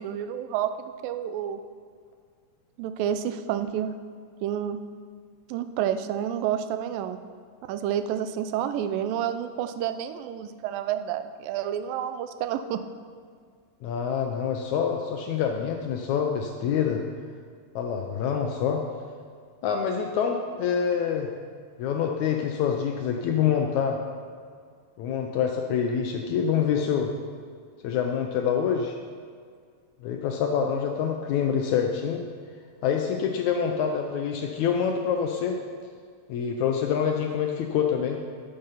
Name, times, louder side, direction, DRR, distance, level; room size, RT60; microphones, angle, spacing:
voice 1, 0.0-1.6 2.8-3.9 4.4-4.8 5.5-7.2 7.6-12.8, right 10 dB, 90° right, 10 dB, 2.3 m, -29 dB
voice 2, 13.8-17.0 17.7-18.8 19.6-21.3 21.8-24.0 25.0-27.1 27.8-29.0 30.0-32.2 32.8-35.6 36.3-38.2, left 7 dB, 80° left, 3 dB, 1.7 m, -26 dB
12.5 x 6.8 x 5.6 m, 2.1 s
omnidirectional pair, 3.9 m